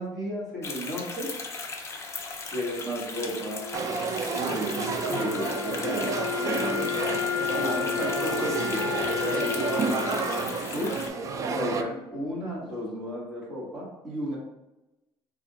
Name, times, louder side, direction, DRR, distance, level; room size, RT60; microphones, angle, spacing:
voice 1, 0.0-1.3 2.5-3.6 4.3-7.0 7.5-9.0 9.3-11.0 11.5-14.4, equal, 5° right, -7 dB, 1.4 m, -34 dB
sound 1, 0.6-11.1, left 4 dB, 30° left, 0.5 m, -38 dB
Wind instrument woodwind instrument, 3.1-12.2, left 8 dB, 90° left, 0.4 m, -33 dB
sound 2, 3.7-11.8, right 5 dB, 35° right, 0.3 m, -30 dB
3.4 x 2.4 x 3.8 m, 0.99 s
cardioid pair, 145°, 9 cm